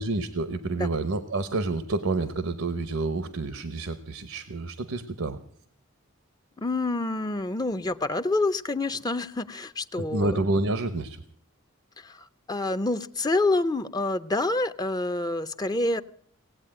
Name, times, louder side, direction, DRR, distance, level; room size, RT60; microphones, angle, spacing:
voice 1, 0.0-5.4 9.9-11.2, right 2 dB, 85° right, 12 dB, 1.0 m, -29 dB
voice 2, 6.6-10.4 12.0-16.0, left 2 dB, 20° left, 11 dB, 0.5 m, -27 dB
18.5 x 8.5 x 8.8 m, 0.63 s
head